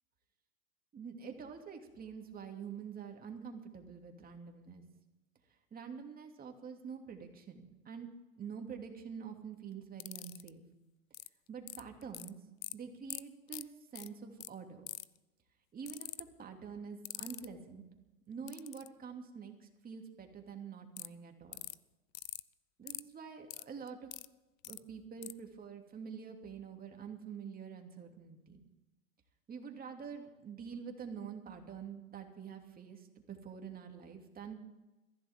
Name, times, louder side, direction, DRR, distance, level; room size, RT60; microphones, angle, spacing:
voice 1, 0.9-4.8 5.7-8.1 8.4-10.6 11.5-12.4 12.7-14.8 15.7-17.8 18.3-21.6 22.8-24.1 24.7-28.6 29.5-34.6, right 6 dB, 20° right, 3 dB, 2.6 m, -47 dB
sound 1, 10.0-10.5 11.1-11.3 11.7-12.3 12.6-12.7 13.1-13.2 13.5-13.6 13.9-14.1 14.4-14.5 14.9-15.2 15.9-16.2 17.0-17.4 18.5-18.9 21.0-21.1 21.5-21.7 22.1-22.4 22.9-23.0 23.5-24.3 24.6-24.8 25.2-25.3, left 15 dB, 70° left, 0.8 m, -43 dB
22.5 x 15.0 x 3.7 m, 1.1 s
hypercardioid pair, 115°, 42 cm